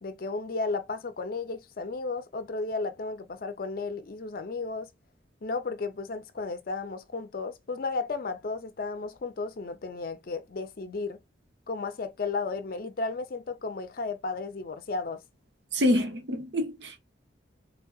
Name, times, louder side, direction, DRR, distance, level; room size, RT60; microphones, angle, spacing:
voice 1, 0.0-4.9 5.4-11.2 11.7-15.2, left 3 dB, 50° left, 0.5 m, -34 dB
voice 2, 15.7-17.0, left 1 dB, 65° right, 0.9 m, -26 dB
3.6 x 3.3 x 2.3 m
head